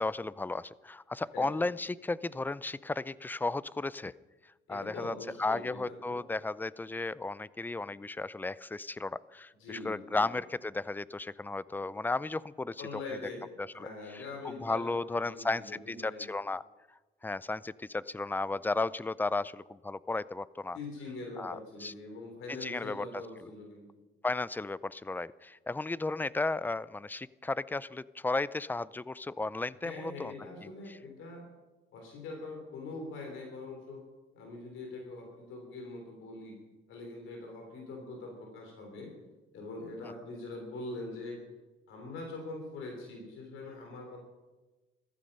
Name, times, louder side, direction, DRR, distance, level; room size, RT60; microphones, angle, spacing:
voice 1, 0.0-4.1 4.7-12.8 13.6-13.9 14.1-16.6 17.2-20.8 21.4-21.9 22.6-23.1 24.2-30.3 30.6-31.0, left 3 dB, 10° left, 19 dB, 0.4 m, -34 dB
voice 2, 1.3-1.6 4.7-6.2 9.6-10.3 12.8-13.5 13.7-16.3 20.7-23.9 29.8-31.5 31.9-34.0 34.3-36.6 36.9-39.1 39.5-41.4 41.9-44.2, left 2 dB, 85° left, 2 dB, 3.5 m, -43 dB
15.0 x 14.0 x 5.5 m, 1.2 s
cardioid pair, 90°, 20 cm